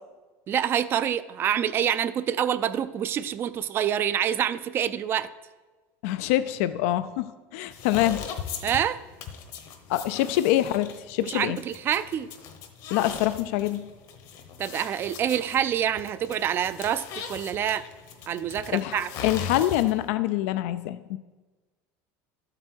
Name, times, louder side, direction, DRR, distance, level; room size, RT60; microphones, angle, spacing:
voice 1, 0.5-5.3 8.6-9.0 11.2-12.3 14.6-17.8 18.3-19.1, right 9 dB, 30° right, 14 dB, 0.4 m, -26 dB
voice 2, 6.0-8.2 9.9-11.6 12.9-13.8 18.7-21.2, left 14 dB, 75° left, 12 dB, 0.4 m, -25 dB
sound 1, 7.7-20.1, left 7 dB, 55° left, 1.1 m, -39 dB
12.0 x 7.7 x 4.6 m, 1.3 s
cardioid pair, 150°, 8 cm